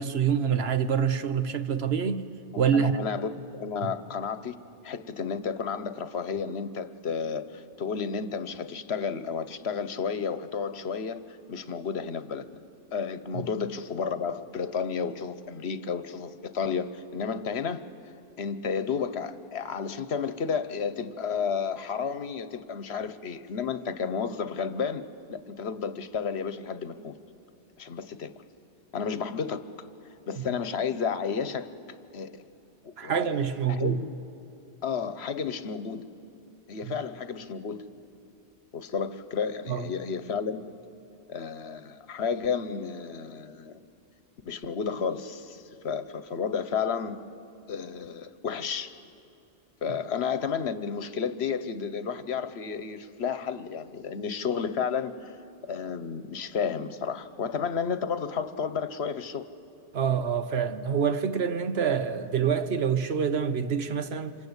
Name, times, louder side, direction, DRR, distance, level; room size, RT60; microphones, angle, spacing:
voice 1, 0.0-2.2 2.6-3.0 3.8-3.9 30.4-30.5 33.0-34.0 36.8-36.9 39.7-39.8 59.9-64.4, right 7 dB, 70° right, 1.3 m, -26 dB
voice 2, 2.5-4.6 4.8-12.6 12.9-17.9 18.4-25.0 25.3-27.2 27.8-28.3 28.9-29.6 30.3-31.7 32.1-32.4 32.8-33.4 33.7-34.2 34.8-36.1 36.7-37.8 38.7-40.7 41.3-43.8 44.5-47.2 47.7-48.9 49.8-55.3 55.7-59.4, left 6 dB, 70° left, 1.2 m, -32 dB
27.5 x 26.0 x 8.2 m
omnidirectional pair, 1.1 m